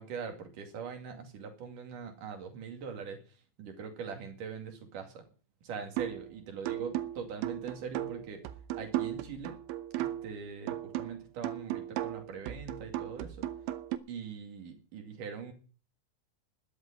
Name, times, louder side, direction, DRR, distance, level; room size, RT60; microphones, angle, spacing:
voice 1, 0.0-3.2 3.6-5.3 5.6-8.4 8.8-9.6 10.0-13.5 14.1-15.5, right 6 dB, 50° right, 5 dB, 3.6 m, -42 dB
sound 1, 6.0-6.3 6.7-10.4 10.7-14.0, right 13 dB, 85° right, 3.3 m, -36 dB
13.0 x 8.2 x 9.6 m, 0.39 s
omnidirectional pair, 5.2 m